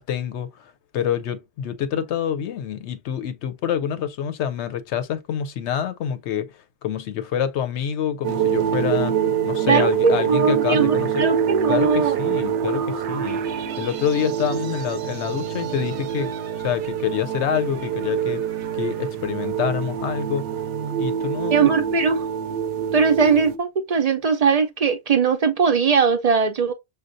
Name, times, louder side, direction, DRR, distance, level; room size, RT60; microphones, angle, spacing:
voice 1, 0.0-9.1 9.4-11.3 11.7-13.4 13.8-16.3 16.6-18.4 18.8-20.6 21.0-21.7, left 9 dB, 85° left, 0.9 m, -27 dB
sound 1, 8.2-23.6, right 9 dB, 85° right, 0.9 m, -25 dB
voice 2, 9.7-12.2 21.5-22.3 22.9-26.7, right 6 dB, 50° right, 0.4 m, -20 dB
6.3 x 2.3 x 2.5 m
omnidirectional pair, 1.2 m